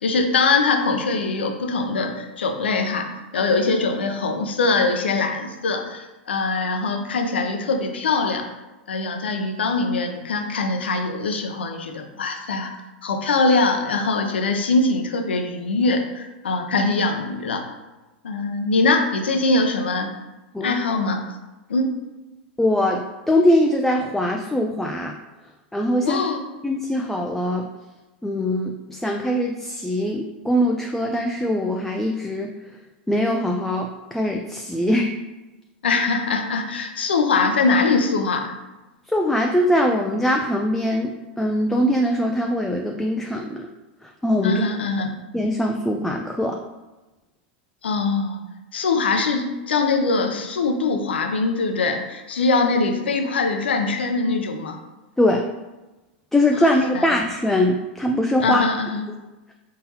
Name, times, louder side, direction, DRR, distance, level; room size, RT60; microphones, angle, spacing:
voice 1, 0.0-3.1 3.3-8.4 8.9-12.7 13.0-17.7 18.2-20.2 20.6-21.2 21.7-21.9 26.1-26.4 35.8-38.5 44.4-45.1 47.8-48.4 48.7-54.8 56.6-57.1 58.4-59.1, left 3 dB, 90° left, 5 dB, 0.6 m, -22 dB
voice 2, 22.6-25.2 25.7-26.2 26.6-27.7 28.2-32.5 33.1-35.1 39.1-43.7 44.0-44.6 45.3-46.6 55.2-55.4 56.3-58.6, left 1 dB, 5° left, 2 dB, 0.3 m, -22 dB
4.1 x 3.8 x 2.8 m, 1.1 s
hypercardioid pair, 115°, 6 cm